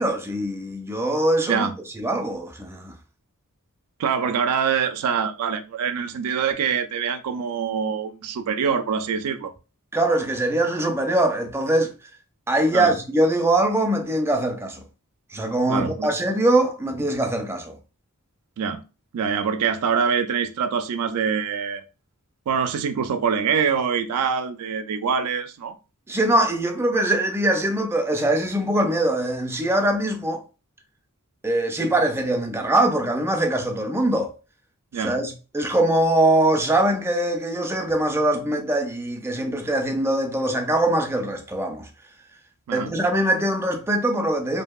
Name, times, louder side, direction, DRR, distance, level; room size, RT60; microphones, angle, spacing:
voice 1, 0.0-1.7 2.0-2.9 9.9-11.9 12.5-14.8 15.3-17.8 26.1-30.4 31.4-34.3 34.9-41.9 42.7-44.6, right 1 dB, 10° right, 0.4 m, -22 dB
voice 2, 4.0-9.5 12.7-12.9 15.7-16.1 18.6-18.8 19.1-21.8 22.5-25.8 34.9-35.2 42.7-42.9, right 6 dB, 85° right, 0.4 m, -24 dB
2.7 x 2.6 x 2.3 m
head